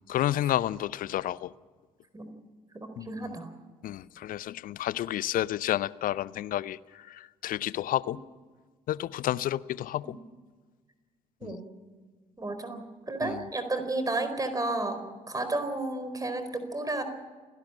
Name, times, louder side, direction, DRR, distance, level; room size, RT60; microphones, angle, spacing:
voice 1, 0.1-1.5 3.0-3.3 3.8-8.2 8.9-10.2 11.4-11.6 13.2-13.4, left 13 dB, 50° left, 0.6 m, -31 dB
voice 2, 2.8-3.5 10.0-10.2 11.4-11.7 12.4-15.0 15.3-17.0, right 2 dB, 20° right, 4.4 m, -32 dB
28.0 x 12.0 x 8.9 m
figure-of-eight pair, 45°, 18 cm